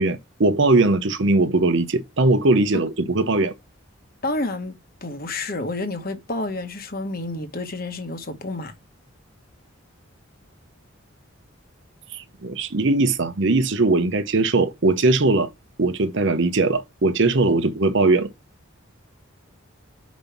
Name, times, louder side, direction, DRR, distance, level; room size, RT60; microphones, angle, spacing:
voice 1, 0.0-3.5 12.1-15.5 15.8-18.3, right 2 dB, 60° right, 0.8 m, -20 dB
voice 2, 4.2-8.7, left 2 dB, 45° left, 1.2 m, -29 dB
5.3 x 5.2 x 5.8 m
head